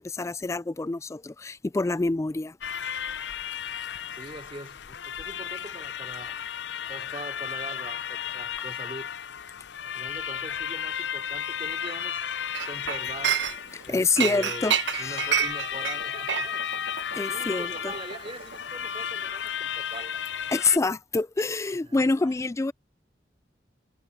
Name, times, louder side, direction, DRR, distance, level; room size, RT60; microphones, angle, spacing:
voice 1, 0.0-2.5 13.9-15.3 17.2-17.9 20.5-22.7, left 3 dB, 15° left, 0.3 m, -27 dB
sound 1, 2.6-20.8, left 8 dB, 75° left, 0.5 m, -34 dB
voice 2, 4.1-6.4 6.9-9.1 9.8-12.3 12.7-13.4 13.9-16.6 17.3-20.3 21.8-22.0, right 2 dB, 30° right, 3.1 m, -42 dB
Chink clink, 12.5-13.8 14.2-18.8 19.0-19.3, right 8 dB, 85° right, 1.1 m, -29 dB
head